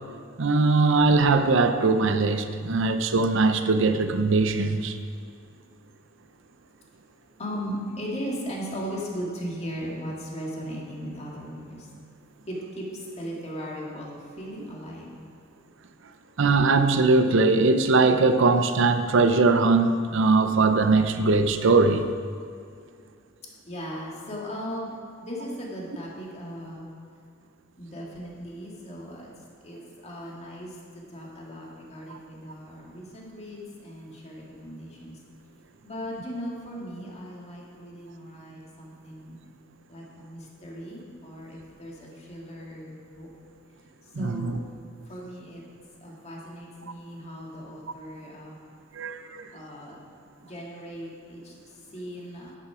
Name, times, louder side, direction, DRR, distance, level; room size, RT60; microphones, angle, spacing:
voice 1, 0.4-5.0 16.4-22.1 32.1-32.2 44.2-44.6 48.9-49.5, right 3 dB, 65° right, 9 dB, 0.6 m, -21 dB
voice 2, 7.4-11.9 12.5-15.1 23.7-24.9 25.2-26.9 27.8-29.3 29.6-29.8 30.0-35.2 35.8-39.4 39.9-43.3 44.0-44.6 45.1-45.6 46.0-48.6 49.5-50.0 50.4-52.6, equal, 35° left, -3 dB, 2.1 m, -37 dB
11.0 x 8.6 x 4.9 m, 2.2 s
head